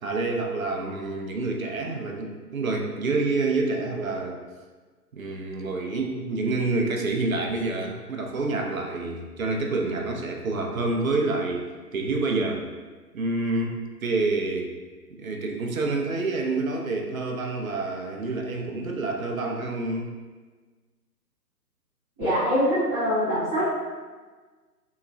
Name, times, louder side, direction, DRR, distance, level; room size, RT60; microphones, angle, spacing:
voice 1, 0.0-4.4 5.1-12.7 13.1-14.7 15.2-20.1, right 3 dB, 55° right, 2 dB, 0.6 m, -28 dB
voice 2, 22.2-23.6, equal, 10° right, -20 dB, 0.6 m, -23 dB
3.8 x 2.9 x 2.5 m, 1.4 s
figure-of-eight pair, 135°, 49 cm